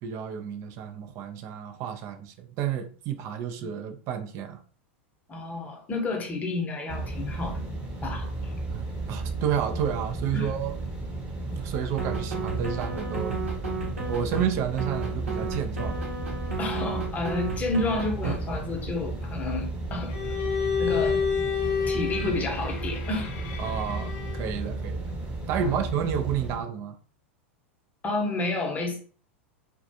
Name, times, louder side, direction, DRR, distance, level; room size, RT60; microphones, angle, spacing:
voice 1, 0.0-4.6 8.7-10.7 11.5-13.4 14.1-16.0 20.9-21.0 23.6-25.1 25.5-27.0, right 8 dB, 45° right, 0.5 m, -31 dB
voice 2, 5.3-7.7 8.0-8.5 10.3-10.5 16.6-20.1 20.8-21.2 21.9-23.3 25.6-25.8 28.0-29.0, left 2 dB, 20° left, 0.8 m, -30 dB
sound 1, 6.9-26.6, right 2 dB, 20° right, 0.9 m, -34 dB
sound 2, 12.0-14.5 14.8-18.4, right 4 dB, 85° right, 0.8 m, -33 dB
Bowed string instrument, 20.1-24.6, left 6 dB, 55° left, 0.6 m, -29 dB
2.4 x 2.2 x 2.7 m
hypercardioid pair, 95°, 7 cm